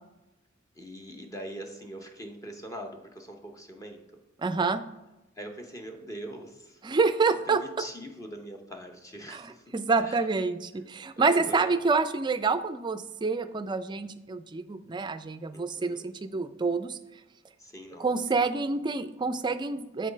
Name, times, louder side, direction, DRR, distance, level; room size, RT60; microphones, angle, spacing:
voice 1, 0.7-4.2 5.4-6.8 7.5-9.7 10.0-10.2 11.2-11.8 15.5-16.1 17.6-18.5, right 1 dB, 15° left, 3 dB, 0.7 m, -43 dB
voice 2, 4.4-4.8 6.8-7.6 9.3-17.0 18.0-20.1, right 4 dB, 20° right, 10 dB, 0.4 m, -27 dB
7.5 x 4.0 x 5.1 m, 0.96 s
head